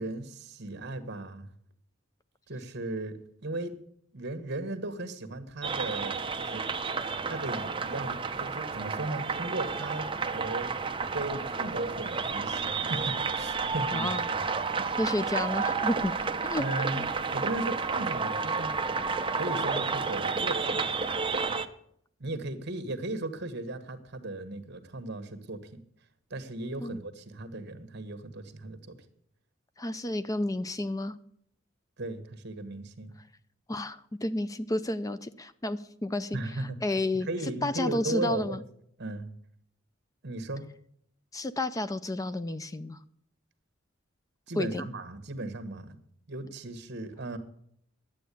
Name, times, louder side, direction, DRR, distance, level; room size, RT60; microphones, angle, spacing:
voice 1, 0.0-1.5 2.5-3.7 4.1-6.6 7.2-10.7 11.1-14.4 14.7-14.9 16.6-18.7 19.3-21.0 22.2-25.8 26.3-29.0 32.0-33.1 36.3-38.6 39.0-39.3 40.2-40.6 44.5-46.0 46.3-47.4, right 2 dB, 60° right, 9 dB, 1.5 m, -37 dB
sound 1, 5.6-21.7, right 4 dB, 25° right, 0.7 m, -31 dB
voice 2, 13.9-14.2 15.0-16.1 16.4-16.6 16.9-17.1 26.8-27.0 29.8-31.1 33.7-36.4 36.8-37.3 37.6-38.6 41.3-43.0 44.6-44.9, left 1 dB, 15° left, 13 dB, 0.5 m, -31 dB
11.5 x 8.4 x 8.4 m, 0.69 s
head